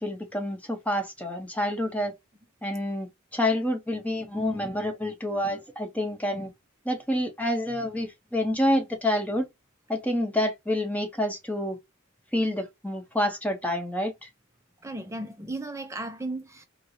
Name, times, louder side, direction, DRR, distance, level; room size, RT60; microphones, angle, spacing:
voice 1, 0.0-2.1 2.6-3.1 3.3-6.5 6.9-9.5 9.9-11.8 12.3-14.1, left 1 dB, 5° left, 0.9 m, -28 dB
voice 2, 14.8-16.7, right 2 dB, 15° right, 0.4 m, -35 dB
4.4 x 2.1 x 2.7 m
head